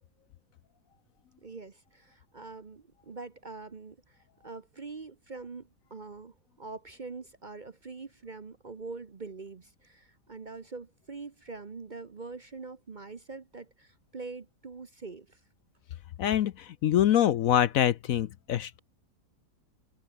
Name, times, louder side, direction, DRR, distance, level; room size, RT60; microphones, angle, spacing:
voice 1, 1.4-15.4, right 4 dB, 35° right, 0.9 m, -44 dB
voice 2, 16.2-16.5 16.8-18.8, left 11 dB, 65° left, 1.0 m, -24 dB
omnidirectional pair, 1.7 m